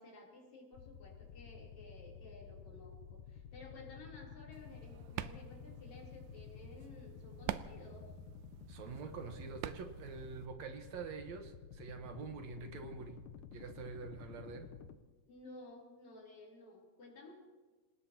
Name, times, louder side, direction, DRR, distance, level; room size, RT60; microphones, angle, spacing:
voice 1, 0.0-8.1 15.2-17.4, left 2 dB, 65° left, -2 dB, 4.8 m, -55 dB
sound 1, 0.7-15.0, left 7 dB, 90° left, 2.2 m, -52 dB
sound 2, 4.5-10.5, right 12 dB, 85° right, 2.1 m, -47 dB
voice 2, 8.7-13.2 13.5-14.7, right 5 dB, 70° right, 6 dB, 2.3 m, -46 dB
27.5 x 18.5 x 2.9 m, 1.3 s
omnidirectional pair, 3.5 m